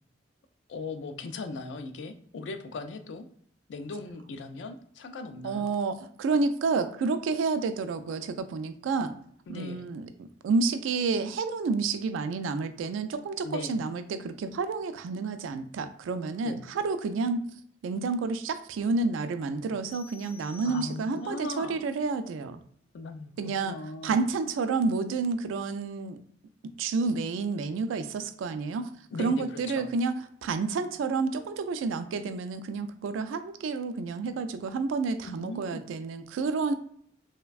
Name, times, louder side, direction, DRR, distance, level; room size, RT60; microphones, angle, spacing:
voice 1, 0.7-3.3 3.7-5.8 9.5-9.9 13.4-13.8 16.4-16.6 20.6-21.8 22.9-23.3 23.6-24.2 29.1-29.9 35.2-35.8, left 3 dB, 65° left, 8 dB, 0.3 m, -39 dB
voice 2, 5.4-9.1 9.5-17.4 17.8-22.6 23.4-23.8 24.0-26.2 26.8-28.9 29.2-30.1 30.4-36.7, right 4 dB, 90° right, 10 dB, 0.3 m, -30 dB
sound 1, 19.9-21.4, left 2 dB, 10° left, 0.6 m, -51 dB
3.3 x 2.1 x 2.3 m, 0.65 s
head